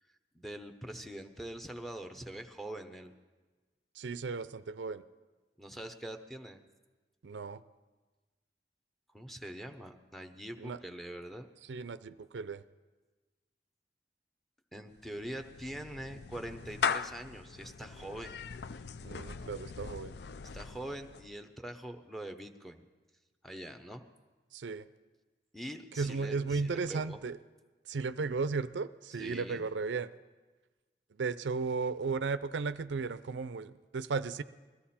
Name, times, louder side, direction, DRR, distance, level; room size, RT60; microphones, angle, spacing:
voice 1, 0.3-3.1 5.6-6.6 9.1-11.5 14.7-18.4 20.5-22.8 23.4-24.0 25.5-27.2 29.2-29.7, right 1 dB, ahead, 6 dB, 0.8 m, -43 dB
voice 2, 4.0-5.0 7.2-7.6 10.6-10.8 11.6-12.6 19.0-20.2 24.5-24.9 26.0-27.4 27.9-30.1 31.2-34.4, right 4 dB, 90° right, 15 dB, 0.5 m, -35 dB
Clapping / Meow, 14.9-21.4, left 6 dB, 65° left, 0.5 m, -39 dB
21.0 x 14.5 x 4.3 m, 1.3 s
head